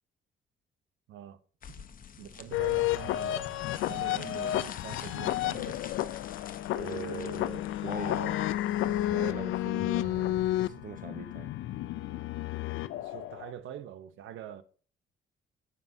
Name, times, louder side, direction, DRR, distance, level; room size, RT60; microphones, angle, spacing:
voice 1, 1.1-1.4 1.8-1.9 2.2-5.8 12.9-14.6, right 10 dB, 80° right, 0.8 m, -44 dB
sound 1, 1.6-9.1, left 7 dB, 45° left, 0.8 m, -48 dB
sound 2, 2.5-13.5, left 14 dB, 85° left, 0.5 m, -31 dB
voice 2, 6.7-8.4 8.8-11.5, right 6 dB, 45° right, 0.9 m, -42 dB
16.5 x 5.9 x 2.7 m
cardioid pair, 90°, 20 cm